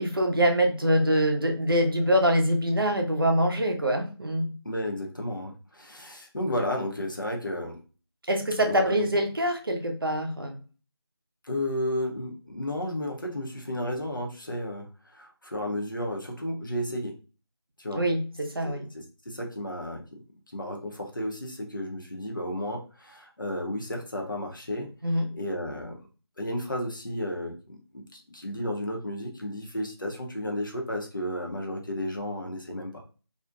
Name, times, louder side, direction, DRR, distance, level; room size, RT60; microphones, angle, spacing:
voice 1, 0.0-4.5 8.3-10.6 18.0-18.9 25.0-25.3, equal, 55° right, 3 dB, 0.6 m, -24 dB
voice 2, 4.6-7.8 8.6-9.1 11.4-17.2 17.8-18.0 18.6-20.0 20.5-24.9 25.3-26.0 26.4-33.0, left 1 dB, 50° left, 1 dB, 0.6 m, -33 dB
2.4 x 2.1 x 2.4 m, 0.35 s
figure-of-eight pair, 170°, 14 cm